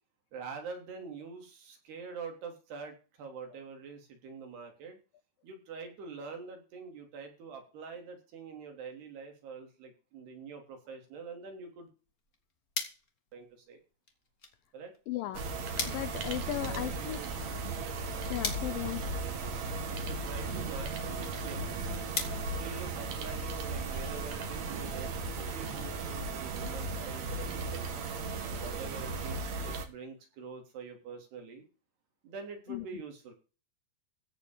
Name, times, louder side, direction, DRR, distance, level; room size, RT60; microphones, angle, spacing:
voice 1, 0.3-5.0 5.4-11.9 13.3-13.8 14.7-14.9 16.6-17.3 19.8-21.7 22.6-27.8 28.5-31.7 32.2-33.3, right 5 dB, 70° right, 4 dB, 5.3 m, -45 dB
sound 1, 12.0-23.5, left 4 dB, 35° left, 1.6 m, -44 dB
voice 2, 15.1-15.5 15.9-17.2 18.3-19.1 32.7-32.9, left 15 dB, 80° left, 14 dB, 2.0 m, -36 dB
sound 2, 15.3-29.9, right 3 dB, 50° right, 2.6 m, -36 dB
16.0 x 5.7 x 7.2 m, 0.35 s
omnidirectional pair, 4.9 m